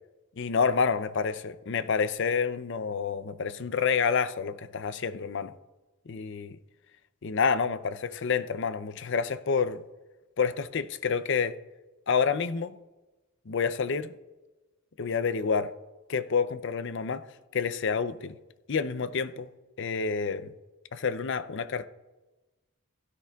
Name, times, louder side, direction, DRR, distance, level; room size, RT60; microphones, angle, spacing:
voice 1, 0.4-5.5 6.1-6.6 7.2-9.8 10.4-11.6 12.1-12.7 13.5-14.1 15.0-15.7 16.1-17.2 17.5-18.4 18.7-19.5 19.8-20.5 20.9-21.9, left 5 dB, 60° left, 0.5 m, -28 dB
16.5 x 13.0 x 2.4 m
head